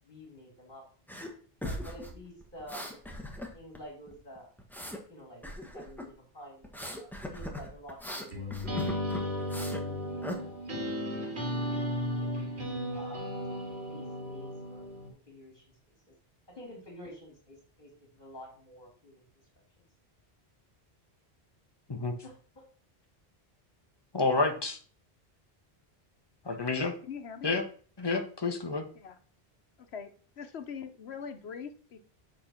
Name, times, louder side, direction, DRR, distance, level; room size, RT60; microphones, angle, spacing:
voice 1, 0.0-0.8 1.6-2.9 3.5-4.5 5.1-5.4 5.7-8.5 9.1-9.4 9.8-10.6 12.2-12.6 12.9-13.3 13.9-14.8 15.1-15.6 16.1-16.2 16.5-19.3 22.2-22.7, equal, 50° left, 0 dB, 2.3 m, -49 dB
sound 1, 1.1-1.3 1.6-3.8 4.1-5.0 5.4-6.1 6.6-9.8 10.2-10.4, left 1 dB, ahead, 1.3 m, -39 dB
sound 2, 8.3-15.1, left 1 dB, 90° right, 2.6 m, -34 dB
voice 2, 24.1-24.8 26.4-26.9 27.4-27.6 28.0-28.9, left 3 dB, 25° left, 5 dB, 1.1 m, -29 dB
voice 3, 27.1-27.5 29.0-29.2 29.8-30.1 30.4-32.0, left 6 dB, 80° left, 8 dB, 1.2 m, -42 dB
7.7 x 4.5 x 5.9 m, 0.44 s
omnidirectional pair, 1.1 m